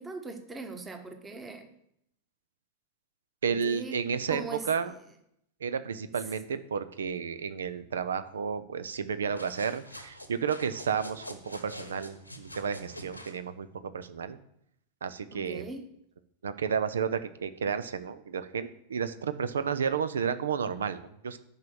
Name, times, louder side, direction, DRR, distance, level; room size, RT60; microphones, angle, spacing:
voice 1, 0.0-1.7 3.4-4.0 4.3-4.6 15.3-15.8, right 3 dB, 15° right, 6 dB, 1.3 m, -40 dB
voice 2, 3.4-4.4 4.7-4.9 5.6-14.4 15.0-15.7 16.4-21.4, right 6 dB, 65° right, 12 dB, 0.7 m, -32 dB
sound 1, 9.2-13.4, left 1 dB, 90° left, 1.2 m, -46 dB
10.5 x 5.5 x 6.4 m, 0.75 s
figure-of-eight pair, 90°, 0 cm